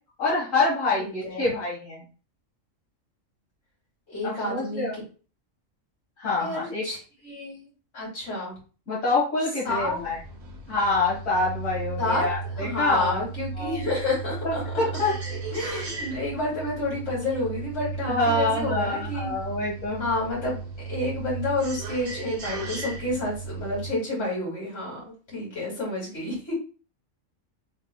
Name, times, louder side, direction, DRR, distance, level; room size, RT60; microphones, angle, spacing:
voice 1, 0.2-2.0 4.2-5.0 6.2-6.8 8.9-10.2 10.7-13.1 13.5-13.8 14.4-15.1 18.1-20.1, left 3 dB, 85° left, -7 dB, 1.8 m, -26 dB
voice 2, 1.0-1.5 4.1-4.9 6.4-7.0 7.2-7.6 7.9-8.5 9.6-10.0 12.0-14.6 15.5-19.3 20.0-20.6 20.9-25.0 25.3-26.5, left 2 dB, 65° left, -5 dB, 2.7 m, -29 dB
sound 1, 9.7-23.9, right 5 dB, 60° right, 1.2 m, -35 dB
4.6 x 3.3 x 2.2 m, 0.36 s
omnidirectional pair, 1.3 m